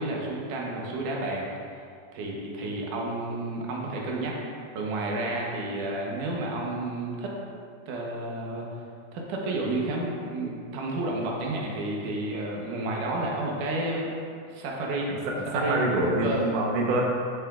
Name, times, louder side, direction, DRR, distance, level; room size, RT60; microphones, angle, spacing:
voice 1, 0.0-1.5 2.1-4.4 4.7-7.3 7.9-8.6 9.1-14.1 14.5-15.2 15.5-16.4, right 2 dB, 90° right, -2 dB, 2.6 m, -31 dB
voice 2, 15.1-17.0, right 2 dB, 65° right, -2 dB, 1.9 m, -26 dB
9.9 x 7.3 x 2.4 m, 2.3 s
omnidirectional pair, 3.5 m